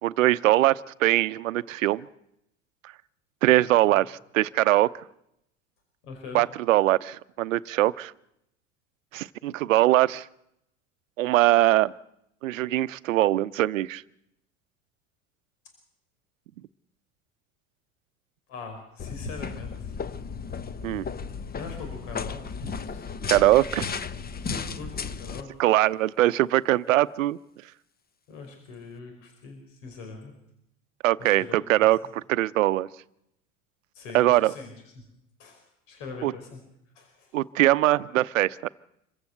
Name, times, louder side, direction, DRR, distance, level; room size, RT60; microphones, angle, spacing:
voice 1, 0.0-2.1 3.4-4.9 6.3-8.1 9.1-10.3 11.2-11.9 12.4-14.0 20.8-21.0 23.3-23.9 25.6-27.4 31.0-32.9 34.1-34.5 36.2-36.3 37.3-38.7, right 15 dB, 85° right, 17 dB, 0.8 m, -22 dB
voice 2, 6.0-6.4 18.5-19.9 21.5-23.1 24.4-25.5 28.3-30.3 31.2-31.6 33.9-34.7 35.4-36.6 36.9-37.3, left 4 dB, 75° left, 4 dB, 5.3 m, -41 dB
sound 1, 19.0-25.4, left 5 dB, 25° left, 1.1 m, -34 dB
26.0 x 15.5 x 8.0 m, 0.80 s
hypercardioid pair, 80°, 38 cm